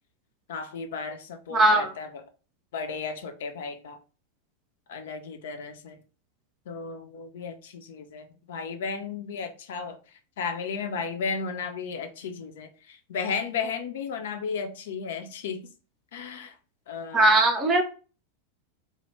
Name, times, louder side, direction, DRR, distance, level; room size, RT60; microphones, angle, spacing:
voice 1, 0.5-2.2 2.7-4.0 4.9-6.0 6.7-10.0 10.4-15.7 16.1-16.5 16.9-17.4, left 5 dB, 55° left, 0.4 m, -34 dB
voice 2, 1.5-1.9 17.1-17.8, right 2 dB, 25° right, 0.5 m, -19 dB
2.1 x 2.0 x 3.2 m
figure-of-eight pair, 90°, 0 cm